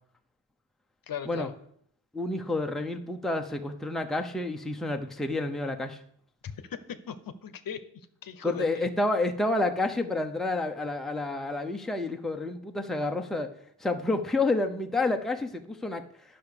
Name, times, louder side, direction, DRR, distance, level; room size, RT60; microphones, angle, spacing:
voice 1, 1.1-1.5 6.7-8.9, left 8 dB, 55° left, 12 dB, 0.9 m, -38 dB
voice 2, 2.1-6.0 8.4-13.5 13.8-16.4, left 2 dB, ahead, 4 dB, 0.8 m, -29 dB
10.0 x 6.0 x 6.6 m, 0.67 s
cardioid pair, 110°, 42 cm